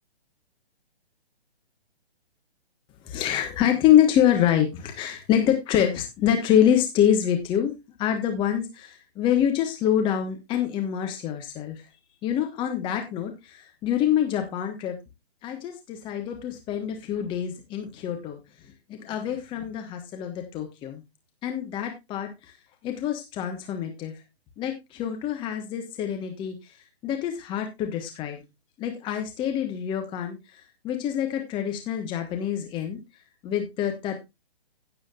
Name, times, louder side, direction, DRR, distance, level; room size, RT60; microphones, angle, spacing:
voice 1, 3.0-7.7 8.0-11.8 12.2-14.9 15.4-21.0 21.4-22.5 22.8-24.1 24.6-26.8 27.0-28.4 28.8-33.0 33.4-34.1, left 10 dB, 15° left, 5 dB, 1.3 m, -26 dB
16.0 x 7.7 x 2.4 m, 0.23 s
figure-of-eight pair, 135°, 31 cm